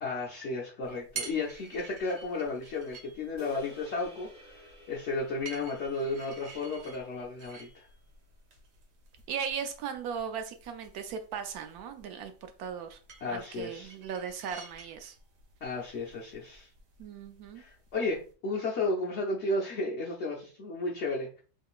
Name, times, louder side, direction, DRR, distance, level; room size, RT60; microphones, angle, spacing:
voice 1, 0.0-7.9 13.2-13.9 15.6-16.7 17.6-21.3, left 2 dB, 65° left, -2 dB, 0.7 m, -33 dB
sound 1, 0.8-18.3, right 5 dB, 90° right, 1.4 m, -50 dB
sound 2, 3.4-7.8, left 2 dB, 10° right, 0.9 m, -52 dB
voice 2, 9.3-12.3 12.6-15.1 17.0-17.6, right 7 dB, 75° right, 7 dB, 1.0 m, -37 dB
3.6 x 3.1 x 2.3 m, 0.38 s
omnidirectional pair, 1.7 m